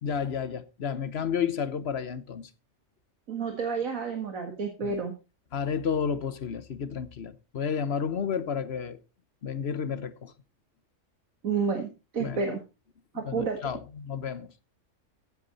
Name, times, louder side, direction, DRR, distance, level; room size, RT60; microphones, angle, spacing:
voice 1, 0.0-2.5 4.8-4.9 5.5-9.0 9.4-10.3 12.2-12.4 13.1-14.5, left 7 dB, 55° left, 1.2 m, -31 dB
voice 2, 3.3-5.1 11.4-12.6 13.1-13.7, right 5 dB, 85° right, 2.1 m, -30 dB
15.0 x 8.6 x 4.1 m
omnidirectional pair, 1.4 m